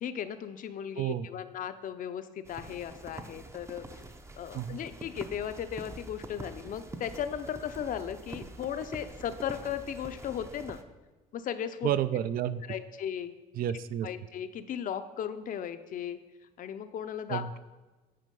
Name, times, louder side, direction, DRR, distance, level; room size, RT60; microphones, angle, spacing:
voice 1, 0.0-4.0 4.4-10.8 11.3-11.9 12.7-13.3 14.0-16.2 16.6-17.6, left 9 dB, 50° left, 10 dB, 0.6 m, -36 dB
voice 2, 1.0-1.3 4.5-4.8 11.8-12.6 13.6-14.1 17.3-17.6, right 10 dB, 60° right, 14 dB, 0.4 m, -30 dB
sound 1, 2.4-10.8, right 2 dB, 15° right, 0.6 m, -46 dB
9.2 x 4.7 x 5.3 m, 1.2 s
cardioid pair, 110°, 17 cm